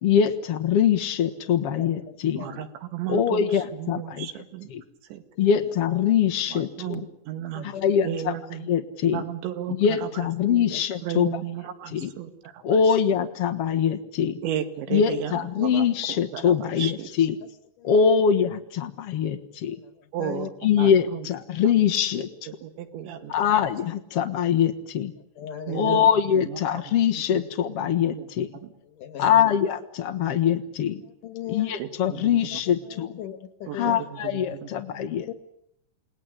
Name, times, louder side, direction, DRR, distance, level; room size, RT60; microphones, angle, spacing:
voice 1, 0.0-2.4 3.1-4.3 4.7-4.8 5.4-7.0 7.6-8.3 8.7-9.2 9.8-11.4 11.9-12.1 12.6-14.4 14.9-17.4 17.8-19.7 20.6-22.3 23.3-25.1 25.7-28.5 29.2-31.0 31.5-33.1 33.7-35.3, left 8 dB, 90° left, 6 dB, 1.3 m, -23 dB
voice 2, 2.3-4.7 5.1-5.2 6.5-7.8 8.0-8.7 9.1-10.7 11.0-12.6 14.4-17.1 20.1-20.5 20.8-21.3 21.6-21.7 22.6-23.5 25.7-26.9 27.3-27.4 28.1-28.3 28.5-28.7 31.8-32.4 32.7-32.8 33.7-35.0, right 10 dB, 85° right, 8 dB, 4.3 m, -34 dB
voice 3, 7.5-8.1 10.7-10.8 17.8-17.9 20.2-20.5 25.4-26.0 29.0-29.5 31.2-31.7 32.9-34.0 35.2-35.3, left 9 dB, 65° left, 10 dB, 2.4 m, -36 dB
29.0 x 20.0 x 9.9 m, 0.78 s
omnidirectional pair, 5.1 m